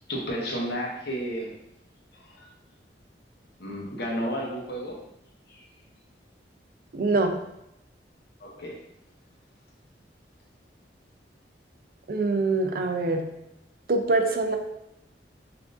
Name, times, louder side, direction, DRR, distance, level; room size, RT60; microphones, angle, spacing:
voice 1, 0.1-1.5 2.1-2.5 3.6-4.9 5.5-5.7 8.4-8.8, equal, 65° left, -2 dB, 0.9 m, -32 dB
voice 2, 6.9-7.3 12.1-13.3 13.9-14.6, right 3 dB, 55° right, 5 dB, 0.4 m, -24 dB
5.7 x 2.5 x 2.4 m, 0.83 s
head